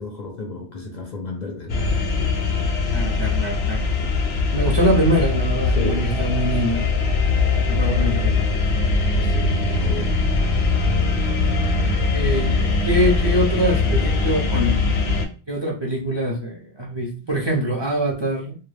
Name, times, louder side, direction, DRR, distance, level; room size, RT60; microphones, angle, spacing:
voice 1, 0.0-2.0 5.8-6.1 9.1-10.2, left 2 dB, 55° left, 0.5 m, -32 dB
sound 1, 1.7-15.3, left 3 dB, 90° left, 0.9 m, -21 dB
voice 2, 2.9-4.1 4.5-6.9 7.4-8.5 12.1-14.8 15.5-18.6, equal, 35° right, 0.5 m, -24 dB
2.1 x 2.1 x 3.2 m
omnidirectional pair, 1.0 m